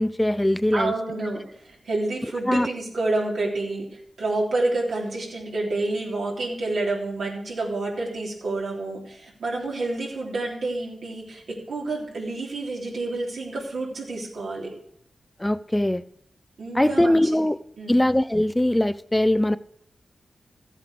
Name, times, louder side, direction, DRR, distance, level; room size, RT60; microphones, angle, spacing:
voice 1, 0.0-0.9 2.5-2.7 15.4-16.0 16.7-17.6 17.9-19.6, left 1 dB, 10° left, 0.5 m, -21 dB
voice 2, 0.7-14.7 16.6-17.2 17.8-18.0, right 2 dB, 85° right, 3.5 m, -29 dB
14.0 x 8.5 x 5.1 m
cardioid pair, 55°, 0 cm